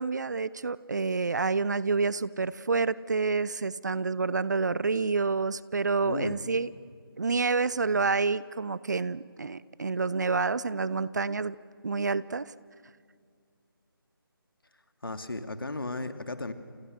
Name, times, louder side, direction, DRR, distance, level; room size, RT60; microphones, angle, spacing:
voice 1, 0.0-6.7 7.2-11.6 11.8-12.5, right 4 dB, 50° right, 19 dB, 0.7 m, -28 dB
voice 2, 6.0-6.4 15.0-16.5, left 2 dB, 65° left, 9 dB, 2.4 m, -34 dB
29.5 x 28.0 x 6.4 m, 2.2 s
figure-of-eight pair, 160°, 12 cm